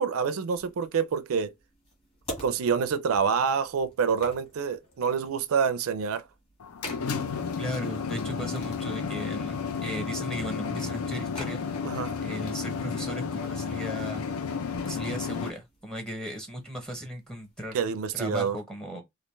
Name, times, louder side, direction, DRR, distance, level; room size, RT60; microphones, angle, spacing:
voice 1, 0.0-1.5 2.4-6.2 11.8-12.2 17.7-18.6, right 6 dB, 70° right, 0.4 m, -27 dB
sound 1, 0.6-18.2, left 1 dB, 25° left, 1.6 m, -49 dB
sound 2, 6.6-15.5, left 5 dB, 80° left, 0.6 m, -32 dB
voice 2, 7.6-11.6 12.2-14.2 14.8-17.8 18.1-19.0, equal, 5° left, 0.6 m, -36 dB
3.4 x 2.4 x 3.1 m
head